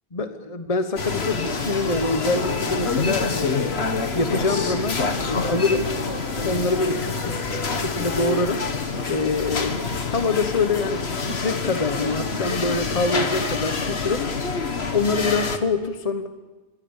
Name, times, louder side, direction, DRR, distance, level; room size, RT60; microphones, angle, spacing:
voice 1, 0.1-3.8 4.1-5.9 6.4-8.6 9.1-9.8 10.1-14.3 14.9-16.3, left 3 dB, 35° left, 8 dB, 1.2 m, -25 dB
sound 1, 0.9-7.9, left 2 dB, 60° left, 3.1 m, -36 dB
sound 2, 1.0-15.6, left 4 dB, 85° left, 1.8 m, -27 dB
27.0 x 23.0 x 7.2 m, 1.2 s
omnidirectional pair, 1.0 m